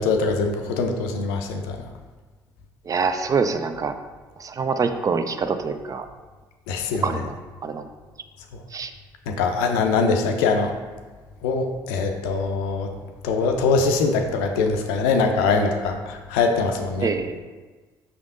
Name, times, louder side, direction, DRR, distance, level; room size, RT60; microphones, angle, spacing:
voice 1, 0.0-1.8 6.7-7.0 9.3-10.7 11.4-12.9 13.2-17.1, left 4 dB, 75° left, 4 dB, 0.4 m, -22 dB
voice 2, 2.9-3.9 4.4-6.1 7.0-7.4 7.6-7.9 8.7-8.9 17.0-17.4, right 5 dB, 35° right, 9 dB, 0.4 m, -25 dB
5.2 x 3.5 x 2.5 m, 1.3 s
hypercardioid pair, 55°, 10 cm